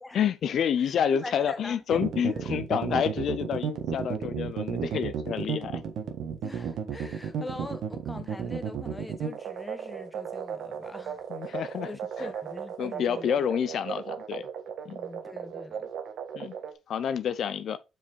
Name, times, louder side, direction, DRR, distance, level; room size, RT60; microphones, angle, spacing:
voice 1, 0.1-5.8 11.3-11.9 12.2-12.3 12.8-14.5 14.9-15.0 16.3-16.5 16.9-17.8, left 8 dB, 65° left, 0.5 m, -28 dB
voice 2, 0.8-2.1 2.3-2.6 6.4-11.6 11.8-13.5 14.9-15.9, left 2 dB, 15° left, 1.3 m, -43 dB
sound 1, 1.9-16.7, right 7 dB, 75° right, 1.5 m, -33 dB
5.5 x 4.9 x 5.1 m
cardioid pair, 90°, 0 cm